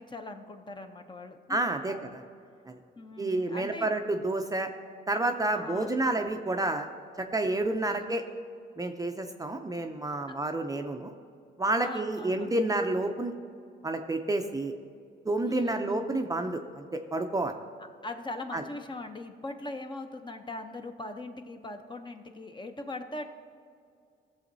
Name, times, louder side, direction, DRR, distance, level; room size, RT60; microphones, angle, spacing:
voice 1, 0.0-2.2 3.0-3.9 5.5-6.0 7.9-8.1 10.3-10.4 11.8-12.5 15.4-16.0 18.0-23.3, left 2 dB, 25° left, 6 dB, 0.7 m, -41 dB
voice 2, 1.5-2.2 2.7-2.8 3.2-4.7 5.1-6.9 7.2-8.2 8.8-11.1 11.6-13.3 13.8-14.7 15.3-17.5 18.5-18.6, right 2 dB, 20° right, 5 dB, 0.5 m, -29 dB
16.0 x 7.0 x 2.7 m, 2.3 s
cardioid pair, 90°, 20 cm